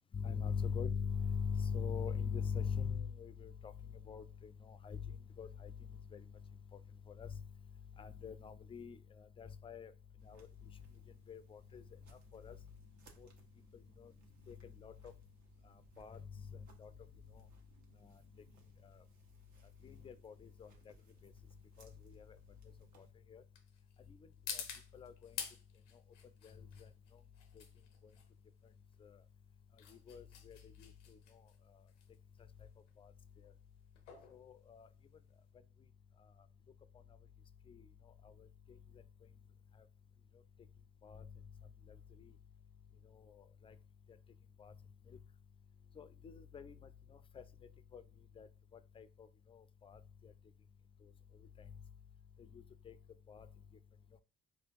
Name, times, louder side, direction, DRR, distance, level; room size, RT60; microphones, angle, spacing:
voice 1, 0.1-6.4 6.7-6.8 7.1-7.4 8.0-9.9 10.2-10.8 11.3-11.8 12.3-12.6 13.2-13.3 13.7-14.1 14.5-15.1 16.0-16.9 17.3-17.4 18.0-18.2 18.8-19.0 19.8-20.9 21.2-21.3 21.8-22.4 23.0-23.4 24.1-24.6 24.9-25.4 26.4-26.9 27.6-27.7 29.0-29.2 29.9-31.4 33.0-33.1 34.3-34.9 37.7-37.9 38.2-38.5 41.0-41.3 41.9-42.3 43.1-43.8 44.6-44.7 46.0-46.8 47.1-47.4 47.9-48.0 48.4-50.3 51.0-51.1 51.6-51.7 52.4-53.0 53.3-53.5, left 6 dB, 15° left, 13 dB, 0.3 m, -43 dB
sound 1, 10.2-23.1, right 4 dB, 55° right, 0.9 m, -67 dB
sound 2, 18.8-35.5, left 7 dB, 90° left, 0.5 m, -51 dB
4.4 x 2.3 x 2.5 m, 0.32 s
hypercardioid pair, 45°, 35 cm